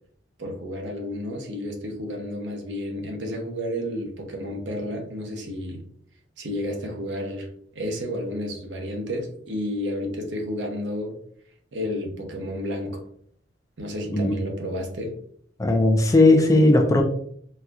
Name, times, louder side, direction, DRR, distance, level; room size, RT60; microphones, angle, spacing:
voice 1, 0.4-5.8 6.4-11.2 11.7-13.1 13.8-15.2, left 1 dB, 65° right, 2 dB, 0.7 m, -31 dB
voice 2, 15.6-17.0, left 2 dB, 15° left, 3 dB, 0.4 m, -17 dB
4.1 x 2.4 x 2.4 m, 0.62 s
head